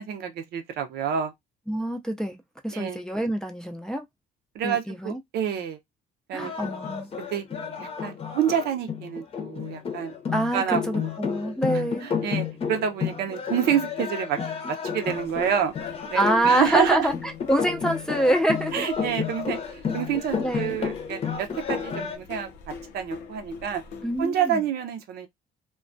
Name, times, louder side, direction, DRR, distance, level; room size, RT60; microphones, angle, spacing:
voice 1, 0.0-1.3 2.7-3.0 4.5-5.8 6.3-6.5 7.2-7.5 7.8-10.1 10.5-11.1 12.0-14.4 14.7-15.7 16.1-17.1 18.7-23.8 24.2-25.3, right 8 dB, 75° right, 0.6 m, -28 dB
voice 2, 1.7-2.4 2.6-4.0 4.6-5.2 6.3-7.1 10.3-12.1 16.1-17.1 17.5-18.9 20.4-20.8 24.0-24.6, right 1 dB, 5° left, 0.4 m, -25 dB
sound 1, 6.4-22.2, left 7 dB, 35° left, 0.7 m, -31 dB
sound 2, 15.0-24.2, left 5 dB, 80° left, 0.6 m, -43 dB
2.2 x 2.2 x 2.5 m
cardioid pair, 110°, 17 cm